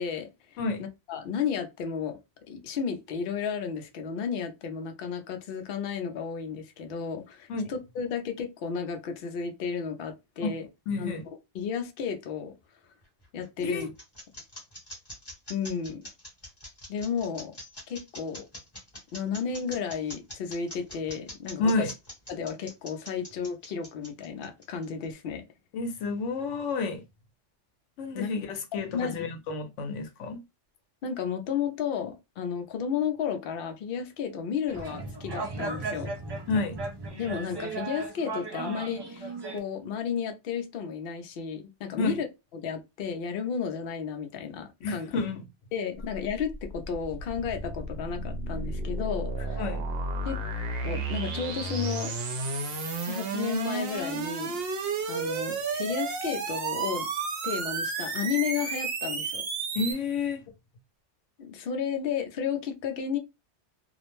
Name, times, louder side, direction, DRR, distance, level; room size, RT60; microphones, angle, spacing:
voice 1, 0.0-2.2 2.5-10.7 11.0-11.1 11.5-12.5 13.3-13.9 15.5-16.0 16.9-17.5 17.9-18.4 19.1-21.9 22.3-25.4 28.1-28.3 28.9-29.2 31.0-36.1 37.1-42.3 42.5-45.1 45.7-49.6 50.2-50.4 50.8-52.1 52.8-54.6 55.1-57.1 57.4-59.5 61.4-63.2, left 7 dB, 60° left, 0.7 m, -33 dB
voice 2, 10.9-11.2 13.6-13.9 21.6-21.9 25.7-27.0 28.0-30.4 36.5-36.8 42.0-42.2 44.8-45.4 49.6-49.8 59.7-60.5, left 3 dB, 85° left, 1.0 m, -30 dB
sound 1, 13.0-25.0, left 1 dB, 20° left, 1.0 m, -43 dB
sound 2, 34.7-39.6, right 3 dB, 40° right, 0.3 m, -36 dB
sound 3, 46.0-59.9, right 3 dB, 60° right, 0.8 m, -32 dB
2.4 x 2.0 x 3.0 m
omnidirectional pair, 1.2 m